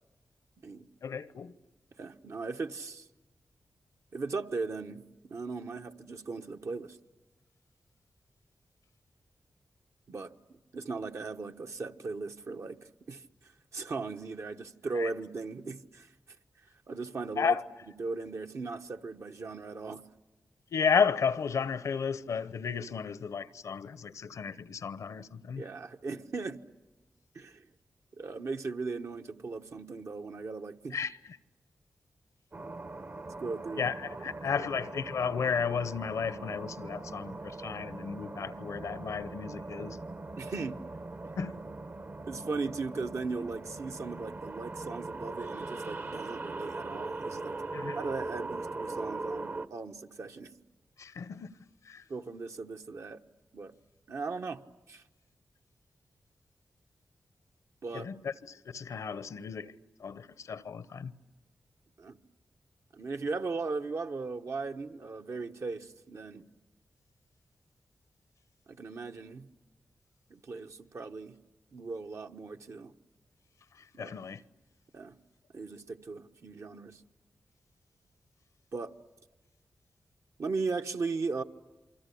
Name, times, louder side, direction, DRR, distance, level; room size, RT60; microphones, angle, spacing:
voice 1, 1.0-1.5 14.9-15.1 17.4-17.6 20.7-25.6 30.9-31.2 33.8-40.0 41.4-41.6 47.7-48.0 51.0-51.5 51.8-52.0 57.9-59.7 60.0-61.1 73.7-74.4, left 6 dB, 80° left, 0.8 m, -33 dB
voice 2, 2.0-3.0 4.1-7.0 10.1-10.3 10.7-12.8 13.1-13.2 13.7-16.1 16.9-17.6 18.0-20.0 25.6-26.6 27.3-27.6 28.1-31.0 33.4-33.9 34.5-34.6 40.4-40.8 42.3-47.6 47.9-50.6 52.1-53.2 53.5-53.7 54.1-54.6 54.9-55.0 57.8-58.1 62.0-62.2 62.9-66.4 68.7-69.5 70.3-71.4 71.7-72.9 73.9-74.1 74.9-75.2 75.5-77.0 78.7-78.9 80.4-81.4, right 4 dB, 65° right, 1.1 m, -37 dB
sound 1, 32.5-49.7, right 3 dB, 40° right, 0.9 m, -40 dB
28.0 x 24.5 x 8.5 m
cardioid pair, 60°, 5 cm